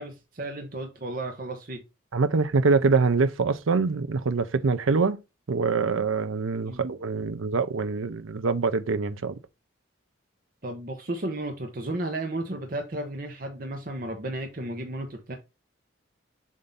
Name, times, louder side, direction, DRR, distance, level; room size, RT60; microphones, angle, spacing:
voice 1, 0.0-1.8 6.7-6.8 10.6-15.4, right 1 dB, 45° right, 0.8 m, -33 dB
voice 2, 2.1-5.2 5.5-9.3, right 4 dB, 80° right, 0.6 m, -24 dB
7.3 x 2.7 x 5.5 m
head